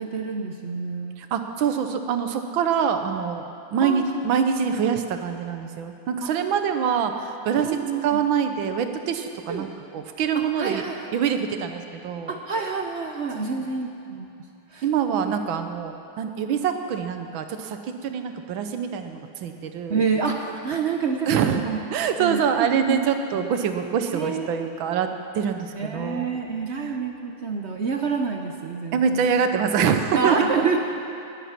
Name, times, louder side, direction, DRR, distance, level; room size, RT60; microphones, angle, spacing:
voice 1, 0.0-1.2 3.8-4.0 6.2-6.3 7.6-8.2 9.5-9.7 10.6-11.1 12.3-14.3 14.7-14.9 15.1-15.3 19.9-21.8 22.2-23.0 23.3-23.4 24.1-25.0 25.7-29.3 30.2-30.8, right 5 dB, 60° right, 3 dB, 0.7 m, -28 dB
voice 2, 1.2-10.8 11.1-12.3 13.3-13.5 14.8-20.0 21.3-21.6 21.9-26.3 26.7-27.0 28.9-30.7, right 7 dB, 85° right, 7 dB, 1.7 m, -25 dB
20.0 x 8.2 x 5.8 m, 2.8 s
omnidirectional pair, 2.1 m